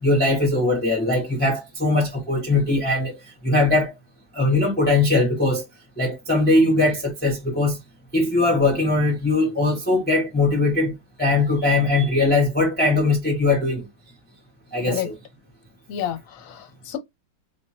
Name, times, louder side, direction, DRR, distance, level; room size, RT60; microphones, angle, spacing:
voice 1, 0.0-3.9 4.3-5.6 6.0-7.8 8.1-13.9 14.7-15.1, left 2 dB, 5° left, 0.9 m, -20 dB
voice 2, 15.9-17.0, left 11 dB, 55° left, 1.0 m, -30 dB
3.6 x 2.9 x 2.9 m
omnidirectional pair, 2.1 m